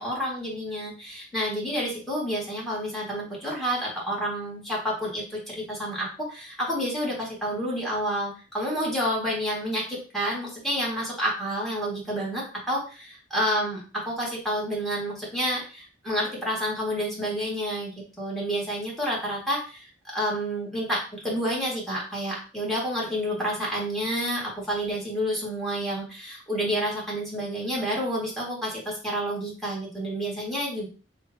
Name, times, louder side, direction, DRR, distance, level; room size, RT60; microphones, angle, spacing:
voice 1, 0.0-17.9 18.2-19.9 20.1-30.9, equal, ahead, -4 dB, 2.0 m, -29 dB
6.7 x 2.6 x 2.8 m, 0.35 s
head